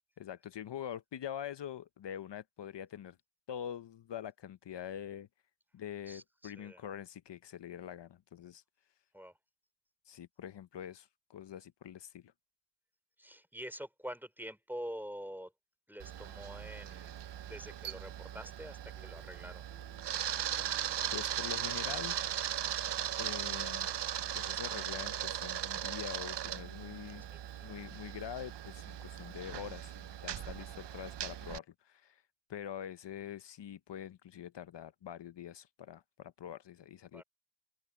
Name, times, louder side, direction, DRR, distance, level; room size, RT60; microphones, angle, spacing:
voice 1, 0.2-3.2 3.5-5.3 5.7-8.6 10.1-12.3 21.1-22.2 23.2-23.9 24.3-27.3 27.6-32.2 32.5-37.2, left 9 dB, 80° left, 0.7 m, -45 dB
voice 2, 6.1-6.8 9.1-9.4 13.2-15.5 15.9-19.7 27.3-27.7 30.5-30.7 37.1-37.2, equal, 5° right, 5.0 m, -46 dB
Camera, 16.0-31.6, right 10 dB, 75° right, 0.7 m, -38 dB
sound 1, 16.1-24.7, left 1 dB, 15° left, 7.5 m, -68 dB
open air
cardioid pair, 50°, 42 cm